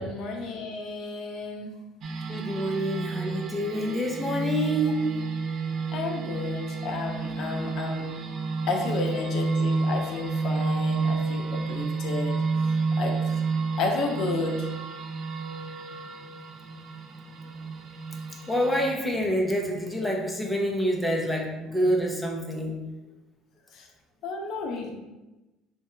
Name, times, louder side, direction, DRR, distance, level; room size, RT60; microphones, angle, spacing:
voice 1, 0.0-1.8 5.9-8.1 8.7-12.4 13.0-13.2 13.8-14.7 23.7-23.9 24.2-24.9, left 3 dB, 60° left, 2 dB, 0.6 m, -31 dB
sound 1, 2.0-18.9, right 4 dB, 45° right, 0.4 m, -30 dB
voice 2, 2.3-5.1 18.5-22.8, equal, 5° left, -2 dB, 0.6 m, -27 dB
3.4 x 2.3 x 4.3 m, 1.0 s
cardioid pair, 130°, 0 cm